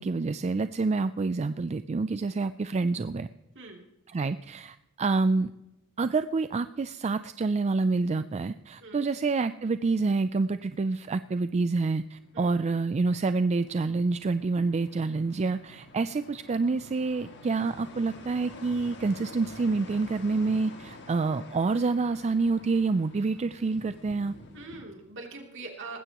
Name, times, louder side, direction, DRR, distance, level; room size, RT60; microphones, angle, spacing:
voice 1, 0.0-3.3 4.1-5.5 6.0-24.3, right 3 dB, 30° right, 12 dB, 0.4 m, -27 dB
sound 1, 11.5-24.8, left 2 dB, 55° left, 2.0 m, -49 dB
voice 2, 24.5-26.0, right 3 dB, 60° right, 1 dB, 2.9 m, -42 dB
19.5 x 16.0 x 3.0 m, 0.94 s
head